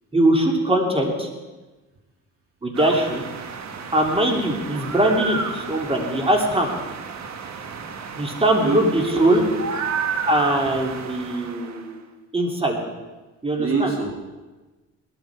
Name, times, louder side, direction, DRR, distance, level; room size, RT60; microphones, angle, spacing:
voice 1, 0.1-1.3 2.6-3.2 3.9-6.7 8.2-9.5 10.2-12.0 12.3-12.8 13.4-13.9, right 1 dB, 20° right, 2 dB, 3.0 m, -21 dB
sound 1, 2.7-11.9, right 6 dB, 65° right, 1.5 m, -32 dB
voice 2, 8.6-9.3 10.7-10.8 11.5-11.7 13.6-14.1, right 4 dB, 45° right, 1 dB, 2.2 m, -26 dB
19.0 x 12.5 x 4.8 m, 1.2 s
cardioid pair, 90°, 30 cm